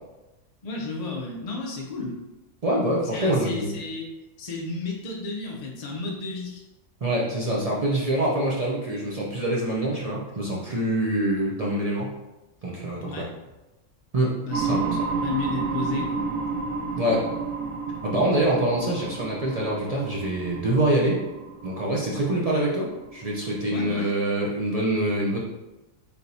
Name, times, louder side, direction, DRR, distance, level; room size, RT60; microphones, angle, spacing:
voice 1, 0.6-2.2 3.1-4.1 4.4-6.6 13.0-13.3 14.4-16.3 23.7-24.1, left 3 dB, 50° left, -1 dB, 0.5 m, -32 dB
voice 2, 2.6-3.8 7.0-12.1 12.6-13.3 14.1-14.3 14.7-14.8 17.0-17.3 18.0-21.2 21.6-25.4, right 1 dB, 45° right, -5 dB, 0.5 m, -25 dB
sound 1, 14.5-24.1, right 4 dB, 70° right, 1.1 m, -31 dB
4.6 x 3.4 x 2.6 m, 1.0 s
omnidirectional pair, 1.4 m